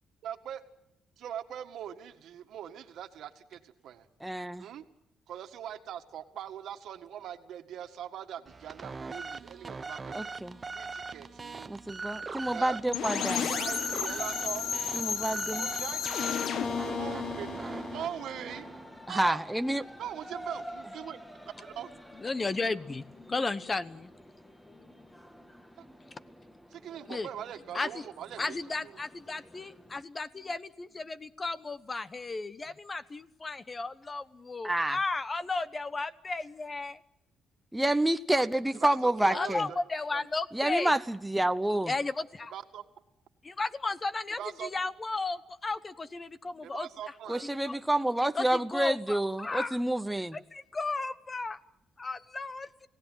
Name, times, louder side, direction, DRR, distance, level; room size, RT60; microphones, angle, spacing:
voice 1, 0.2-0.6 1.2-4.1 4.6-4.8 5.3-10.3 10.7-11.7 12.5-14.7 15.6-16.0 17.0-17.5 17.9-18.6 19.1-19.4 20.0-21.2 21.6-21.9 25.8-25.9 26.7-28.9 38.8-39.8 40.1-40.2 42.5-42.8 44.4-44.9 46.6-47.5, right 10 dB, 75° right, 7 dB, 1.8 m, -41 dB
voice 2, 4.2-4.7 10.1-10.6 11.7-13.5 14.9-15.7 19.1-19.8 34.6-35.0 37.7-39.7 40.5-41.9 47.3-50.4, right 1 dB, 5° right, 9 dB, 0.9 m, -28 dB
sound 1, 8.5-19.0, right 4 dB, 30° right, 1.0 m, -41 dB
sound 2, 12.9-18.7, left 7 dB, 70° left, 1.4 m, -33 dB
sound 3, 13.2-30.0, equal, 10° left, 2.0 m, -49 dB
voice 3, 22.2-24.1 24.7-25.1 27.1-27.3 27.7-28.0 28.4-37.0 39.3-40.9 41.9-42.5 43.4-46.9 47.7-47.8 48.3-49.8 50.3-51.6 52.0-52.7, left 3 dB, 30° left, 14 dB, 1.1 m, -34 dB
30.0 x 17.0 x 9.2 m, 0.83 s
cardioid pair, 90°, 0 cm